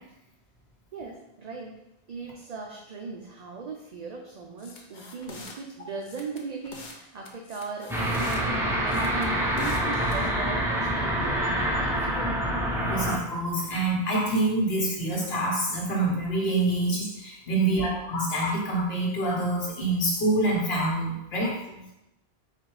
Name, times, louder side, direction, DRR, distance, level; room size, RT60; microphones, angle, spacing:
voice 1, 0.9-1.8 2.1-12.3 17.6-17.9 21.7-22.0, right 4 dB, 55° right, 1 dB, 0.5 m, -39 dB
sound 1, 4.6-5.6 6.0-7.0 7.3-8.4 8.9-10.3, left 3 dB, 55° left, 0.7 m, -45 dB
sound 2, 7.9-13.2, right 1 dB, 5° right, 0.5 m, -26 dB
voice 2, 12.9-21.5, right 2 dB, 75° left, -3 dB, 1.4 m, -26 dB
4.1 x 2.7 x 4.6 m, 0.89 s
omnidirectional pair, 1.0 m